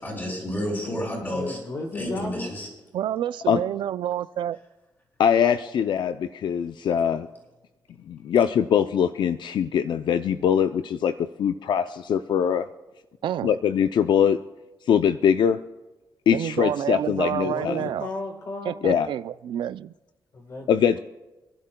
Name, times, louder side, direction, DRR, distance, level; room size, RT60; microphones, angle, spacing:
voice 1, 0.0-1.6 1.9-2.7, equal, 25° left, 5.6 m, -30 dB
voice 2, 1.3-2.5 17.4-18.8 20.3-21.0, left 2 dB, 40° left, 1.4 m, -34 dB
voice 3, 2.9-4.6 13.2-13.5 16.3-18.1 18.7-19.9, right 10 dB, 85° right, 0.4 m, -28 dB
voice 4, 5.2-7.3 8.1-12.7 13.4-14.4 14.9-15.6 16.3-17.8 18.8-19.1 20.7-21.0, left 8 dB, 70° left, 0.4 m, -22 dB
28.0 x 11.0 x 2.2 m
cardioid pair, 115°, 8 cm